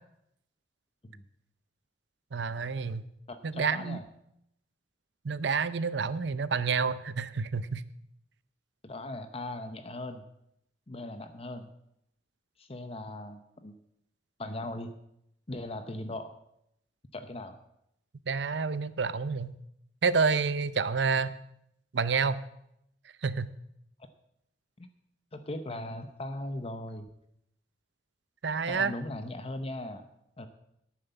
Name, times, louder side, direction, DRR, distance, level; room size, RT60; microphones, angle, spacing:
voice 1, 2.3-3.1 3.4-4.0 5.2-7.8 18.3-19.5 20.0-21.4 21.9-22.4 23.2-23.5 28.4-28.9, right 5 dB, 70° right, 16 dB, 0.6 m, -29 dB
voice 2, 3.3-4.0 8.8-10.3 10.9-11.7 12.6-13.7 14.4-14.9 15.5-16.3 17.1-17.6 24.8-24.9 25.3-27.1 28.7-30.0 30.4-30.5, left 1 dB, 35° left, 9 dB, 0.8 m, -38 dB
11.0 x 9.1 x 6.9 m, 0.78 s
head